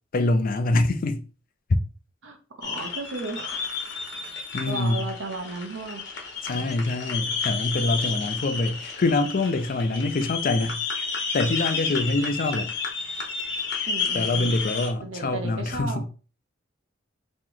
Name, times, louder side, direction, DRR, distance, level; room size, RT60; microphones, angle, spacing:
voice 1, 0.1-1.2 4.5-5.1 6.4-10.8 11.3-12.7 14.1-16.0, left 2 dB, 45° left, 0.5 m, -25 dB
voice 2, 2.2-3.7 4.7-6.0 6.5-6.7 13.9-14.5 15.0-16.0, right 2 dB, 85° right, 0.8 m, -35 dB
sound 1, 2.6-14.9, left 5 dB, 65° left, 1.0 m, -31 dB
3.0 x 2.9 x 3.8 m
head